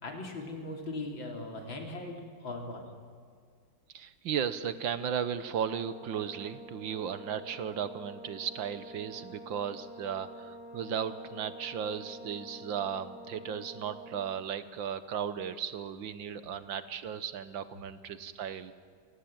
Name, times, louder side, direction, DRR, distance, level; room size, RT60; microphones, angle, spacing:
voice 1, 0.0-2.9, left 2 dB, 65° left, 3 dB, 4.0 m, -39 dB
voice 2, 3.9-18.7, right 8 dB, 70° right, 13 dB, 1.7 m, -35 dB
Brass instrument, 5.5-14.4, equal, 30° left, 3.4 m, -48 dB
28.0 x 18.5 x 9.0 m, 2.1 s
omnidirectional pair, 2.3 m